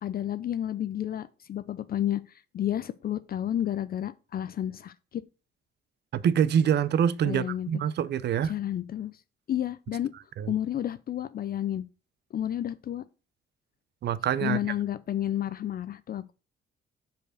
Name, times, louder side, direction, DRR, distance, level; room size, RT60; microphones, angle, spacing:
voice 1, 0.0-5.2 7.3-7.7 8.4-9.2 9.5-10.1 10.5-11.8 12.3-13.0 14.4-16.3, left 11 dB, 50° left, 0.5 m, -31 dB
voice 2, 6.1-8.5 10.4-10.5 14.0-14.6, right 8 dB, 60° right, 0.6 m, -25 dB
5.2 x 4.7 x 6.1 m
cardioid pair, 90°, 20 cm